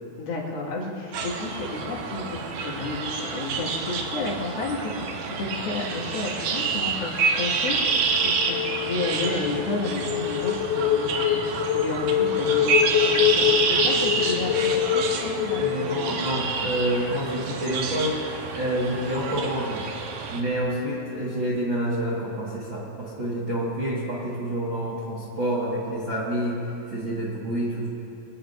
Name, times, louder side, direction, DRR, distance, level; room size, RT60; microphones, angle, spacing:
voice 1, 0.2-16.1, left 3 dB, 70° left, -3 dB, 3.8 m, -32 dB
sound 1, 1.1-20.4, right 5 dB, 70° right, 2.3 m, -28 dB
sound 2, 7.9-16.8, left 10 dB, 90° left, 2.0 m, -25 dB
voice 2, 15.6-18.2 18.5-19.9 20.3-26.6 26.9-27.9, right 1 dB, 45° right, -6 dB, 1.6 m, -28 dB
23.5 x 17.0 x 2.6 m, 2.9 s
omnidirectional pair, 4.5 m